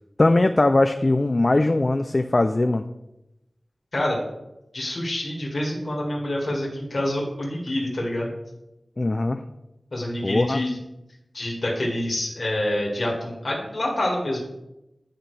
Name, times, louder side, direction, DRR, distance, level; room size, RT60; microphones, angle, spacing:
voice 1, 0.2-2.8 9.0-9.4 10.2-10.6, left 2 dB, 40° left, 8 dB, 0.3 m, -20 dB
voice 2, 4.7-8.3 9.9-10.8 11.3-14.4, left 1 dB, 60° left, -3 dB, 2.0 m, -27 dB
9.7 x 5.7 x 3.4 m, 0.92 s
wide cardioid pair, 70°, 0 cm